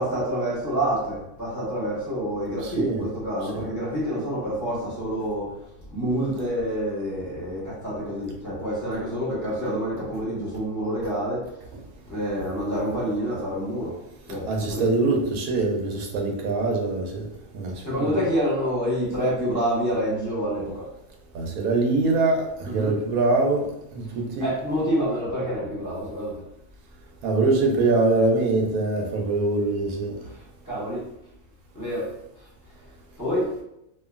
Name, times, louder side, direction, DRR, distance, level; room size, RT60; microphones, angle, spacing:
voice 1, 0.0-5.5 5.9-11.4 12.1-13.9 14.3-14.9 17.8-20.9 22.6-22.9 24.4-26.3 30.7-31.0 31.7-32.1 33.2-33.5, equal, 15° left, -8 dB, 1.1 m, -27 dB
voice 2, 2.6-3.0 3.4-3.7 14.5-17.3 17.5-18.2 21.3-24.5 27.2-30.2, right 3 dB, 90° right, 1 dB, 1.1 m, -24 dB
2.9 x 2.4 x 2.4 m, 0.82 s
omnidirectional pair, 1.5 m